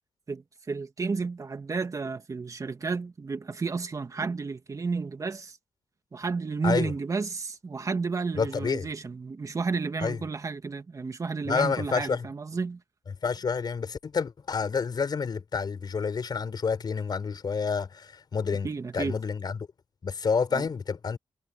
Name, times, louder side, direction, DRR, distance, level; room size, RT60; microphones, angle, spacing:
voice 1, 0.3-5.6 6.1-12.8 18.6-19.2 20.5-20.7, right 4 dB, 35° right, 2.2 m, -32 dB
voice 2, 8.3-8.9 10.0-10.2 11.5-12.2 13.1-19.6 20.0-21.2, left 5 dB, 45° left, 5.2 m, -29 dB
cardioid pair, 95°, 9 cm